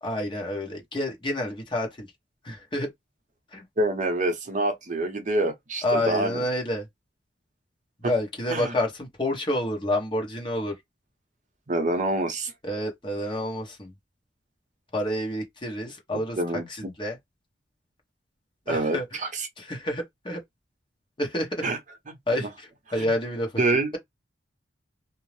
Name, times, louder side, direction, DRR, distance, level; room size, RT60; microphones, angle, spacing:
voice 1, 0.0-2.1 2.4-2.9 3.5-3.6 5.8-6.9 8.0-10.7 12.6-13.9 14.9-17.2 18.7-19.3 19.6-20.4 21.2-21.7 22.3-23.6, left 1 dB, 25° left, 1.0 m, -29 dB
voice 2, 3.8-6.4 8.0-8.1 8.5-8.7 11.7-12.5 16.4-16.9 18.7-19.5 21.6-21.8 22.4-22.5 23.0-23.1 23.6-24.0, right 2 dB, 40° right, 0.7 m, -26 dB
2.6 x 2.0 x 3.1 m
head